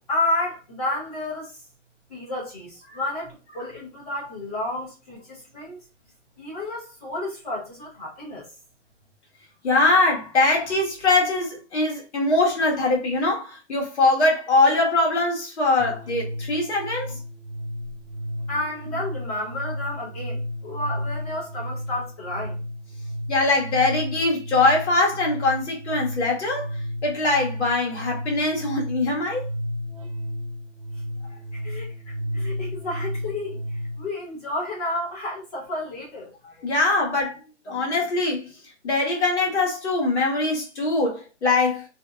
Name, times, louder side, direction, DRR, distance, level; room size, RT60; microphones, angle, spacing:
voice 1, 0.1-1.6 2.1-5.8 6.4-8.5 18.5-22.6 31.5-36.3, left 2 dB, 30° left, 1.0 m, -31 dB
voice 2, 9.6-17.2 23.3-26.7 27.0-29.5 36.6-37.4 37.7-38.5 38.8-41.9, left 2 dB, 65° left, 1.2 m, -22 dB
sound 1, 15.8-34.0, equal, 30° right, 0.4 m, -33 dB
2.7 x 2.1 x 2.2 m
hypercardioid pair, 180°, 36 cm